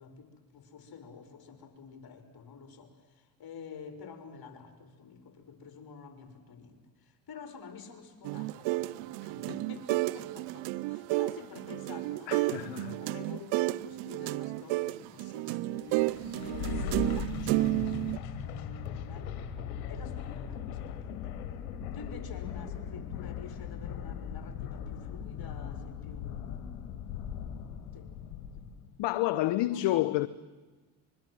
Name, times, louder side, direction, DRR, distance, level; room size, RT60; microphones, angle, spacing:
voice 1, 0.0-12.6 13.0-19.3 19.9-21.3 21.9-26.5 27.9-28.1 29.3-29.9 30.2-30.3, left 5 dB, 55° left, 5.2 m, -49 dB
sound 1, 8.2-18.2, right 19 dB, 75° right, 0.7 m, -31 dB
voice 2, 12.3-13.0 29.0-30.3, left 15 dB, 75° left, 1.0 m, -29 dB
sound 2, 15.8-28.9, left 8 dB, 90° left, 2.2 m, -39 dB
25.0 x 23.0 x 7.8 m
hypercardioid pair, 55°, 44 cm